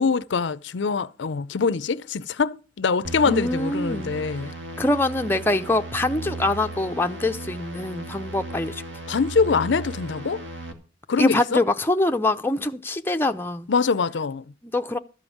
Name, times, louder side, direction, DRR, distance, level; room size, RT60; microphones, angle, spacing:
voice 1, 0.0-4.5 9.1-10.4 11.1-11.6 13.7-14.4, left 5 dB, 70° left, 0.5 m, -24 dB
sound 1, 3.0-10.7, right 2 dB, 75° right, 2.2 m, -36 dB
voice 2, 3.2-4.1 4.8-8.8 11.2-13.7 14.6-15.0, left 2 dB, 10° left, 0.6 m, -24 dB
13.0 x 5.3 x 8.4 m
head